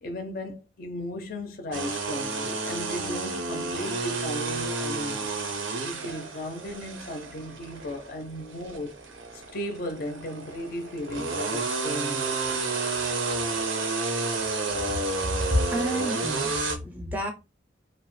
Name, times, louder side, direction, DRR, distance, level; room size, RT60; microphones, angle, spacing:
voice 1, 0.0-5.3 5.8-8.9 9.3-12.8, left 1 dB, 45° left, 0.4 m, -36 dB
sound 1, 1.7-16.8, right 3 dB, 90° right, 0.6 m, -31 dB
voice 2, 15.3-17.3, equal, 10° right, 0.5 m, -29 dB
2.6 x 2.1 x 3.0 m
head